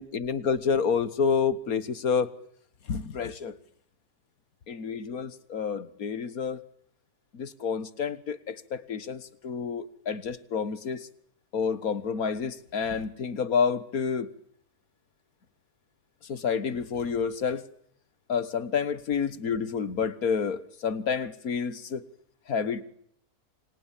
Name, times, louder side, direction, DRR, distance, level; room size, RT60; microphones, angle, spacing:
voice 1, 0.0-2.3 2.9-3.6 4.7-6.6 7.3-11.1 11.5-14.3 16.3-17.6 18.3-22.0 22.5-22.8, left 6 dB, 65° left, 16 dB, 1.8 m, -29 dB
29.0 x 25.0 x 7.4 m, 0.70 s
omnidirectional pair, 1.7 m